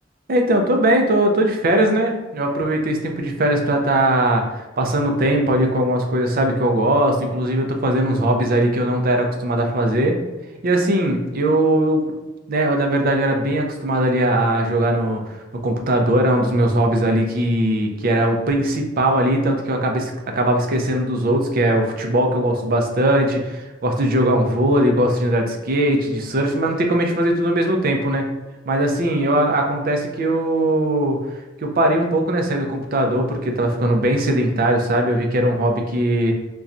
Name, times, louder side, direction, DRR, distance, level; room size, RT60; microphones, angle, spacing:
voice 1, 0.3-10.2 10.6-12.0 12.5-15.2 15.6-28.3 28.7-31.2 31.6-36.3, right 1 dB, 50° right, 3 dB, 0.5 m, -20 dB
4.1 x 2.3 x 2.5 m, 1.1 s
head